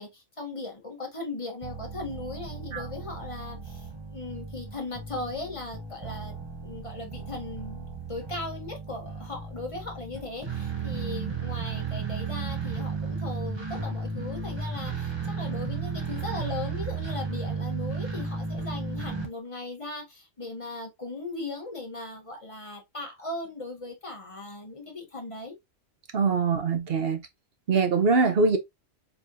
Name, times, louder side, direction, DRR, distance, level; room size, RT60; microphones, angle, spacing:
voice 1, 0.0-6.3 6.6-25.6, left 2 dB, 25° left, 1.5 m, -38 dB
sound 1, 1.6-19.3, right 5 dB, 20° right, 0.9 m, -34 dB
voice 2, 26.1-27.3 27.7-28.6, right 4 dB, 55° right, 1.0 m, -23 dB
4.8 x 3.3 x 2.4 m
omnidirectional pair, 1.3 m